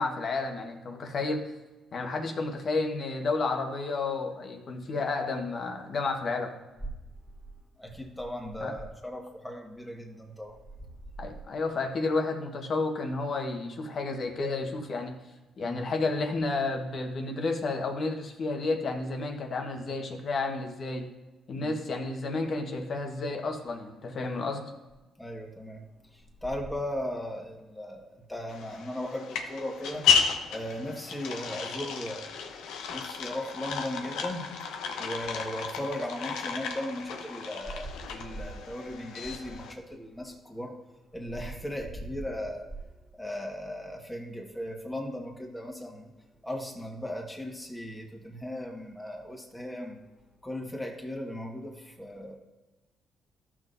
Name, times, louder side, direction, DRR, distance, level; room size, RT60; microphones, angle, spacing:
voice 1, 0.0-1.5 1.9-6.6 8.6-8.8 11.2-15.2 15.6-21.1 21.5-24.7, left 3 dB, 55° left, 4 dB, 1.3 m, -31 dB
voice 2, 7.8-10.6 15.6-15.8 21.6-21.7 25.2-25.8 26.1-30.1 30.5-34.5 35.0-40.8 41.1-42.7 43.1-46.1 46.4-50.0 50.4-52.4, equal, 10° left, 0 dB, 1.6 m, -37 dB
sound 1, 28.5-39.7, left 6 dB, 90° left, 0.9 m, -33 dB
14.0 x 6.1 x 2.7 m, 1.1 s
cardioid pair, 90°, 0 cm